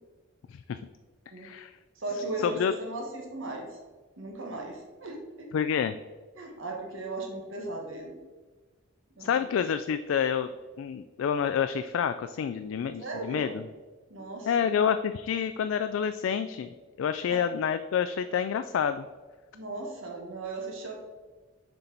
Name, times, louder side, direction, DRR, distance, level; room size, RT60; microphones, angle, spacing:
voice 1, 1.4-1.8 2.4-2.7 5.5-6.0 9.2-10.5 10.8-13.7 14.5-16.7 17.0-19.1, left 7 dB, 75° left, 10 dB, 0.3 m, -28 dB
voice 2, 2.0-3.7 4.2-5.5 6.4-8.2 9.2-9.3 13.0-13.5 14.1-14.7 17.3-17.4 19.5-20.9, right 2 dB, 75° right, 0 dB, 1.5 m, -37 dB
7.0 x 4.4 x 3.9 m, 1.3 s
head